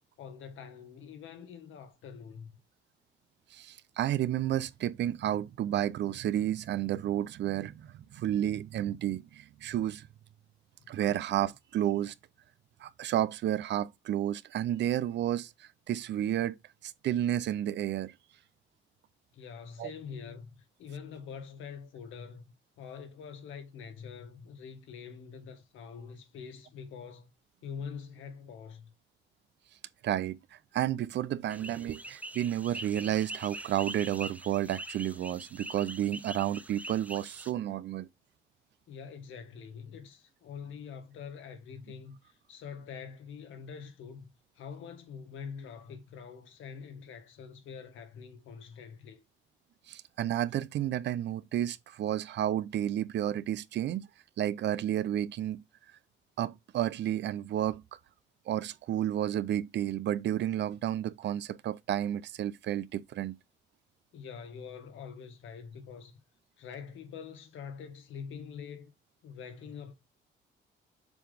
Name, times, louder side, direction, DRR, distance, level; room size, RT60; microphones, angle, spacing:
voice 1, 0.2-2.5 10.8-11.0 19.3-22.4 22.8-27.3 27.6-28.9 38.9-49.2 64.1-66.2 66.6-68.9 69.2-69.9, left 6 dB, 80° left, 1.4 m, -45 dB
voice 2, 3.5-10.1 10.9-12.1 12.8-16.6 16.8-18.1 19.8-19.9 30.0-38.1 49.9-54.1 54.4-55.6 56.4-57.8 58.5-63.4, right 11 dB, 65° right, 0.5 m, -31 dB
sound 1, 31.5-37.5, right 1 dB, 5° right, 0.6 m, -43 dB
7.1 x 3.9 x 3.4 m
cardioid pair, 90°, 20 cm